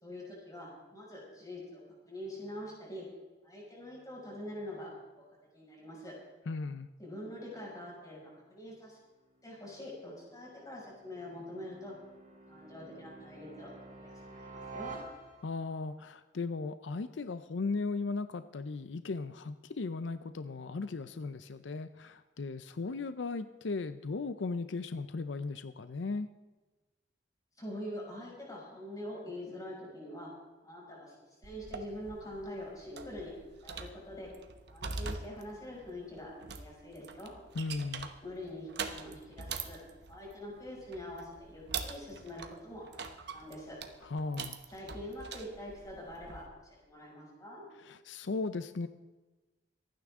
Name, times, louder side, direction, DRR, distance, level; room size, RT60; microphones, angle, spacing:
voice 1, 0.0-3.1 3.4-4.9 5.2-5.3 5.5-6.1 7.0-8.2 8.5-9.0 9.4-11.9 12.5-15.0 27.6-30.3 30.6-31.1 31.4-33.3 33.6-34.3 34.7-37.3 38.2-39.8 40.1-43.8 44.7-47.6, left 1 dB, 20° left, -4 dB, 6.0 m, -44 dB
voice 2, 6.5-6.9 15.4-26.3 37.5-38.1 44.0-44.6 47.8-48.9, left 3 dB, 85° left, 11 dB, 0.6 m, -37 dB
sound 1, 9.3-15.7, right 3 dB, 45° right, 5.5 m, -50 dB
sound 2, 31.4-46.5, right 5 dB, 65° right, 1.1 m, -44 dB
26.0 x 9.6 x 3.7 m, 1.2 s
head